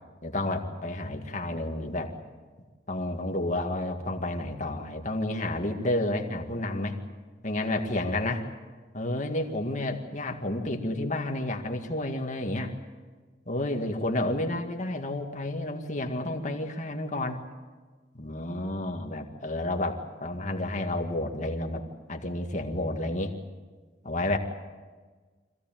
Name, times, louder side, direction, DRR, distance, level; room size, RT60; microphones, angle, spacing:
voice 1, 0.2-2.2 2.9-7.0 7.4-8.4 8.9-12.7 13.5-17.4 18.1-21.8 22.1-23.4 24.0-24.4, left 1 dB, 45° left, 3 dB, 2.0 m, -30 dB
25.5 x 16.0 x 9.0 m, 1.4 s
head